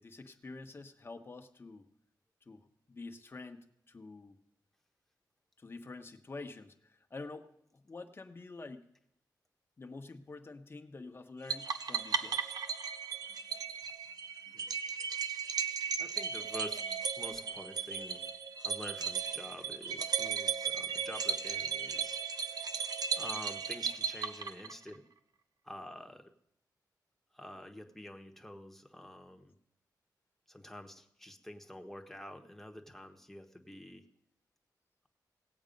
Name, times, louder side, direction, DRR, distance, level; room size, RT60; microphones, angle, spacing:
voice 1, 0.0-1.9 2.4-4.4 5.6-8.9 9.8-12.5, left 3 dB, 30° left, 6 dB, 1.1 m, -48 dB
sound 1, 11.5-24.9, right 6 dB, 60° right, 0.8 m, -36 dB
voice 2, 14.4-14.7 16.0-18.3 18.6-22.2 23.1-25.1 25.6-26.3 27.3-29.5 30.5-34.1, left 1 dB, 5° left, 4 dB, 1.2 m, -48 dB
18.5 x 8.0 x 5.3 m, 0.75 s
wide cardioid pair, 110°, 7 cm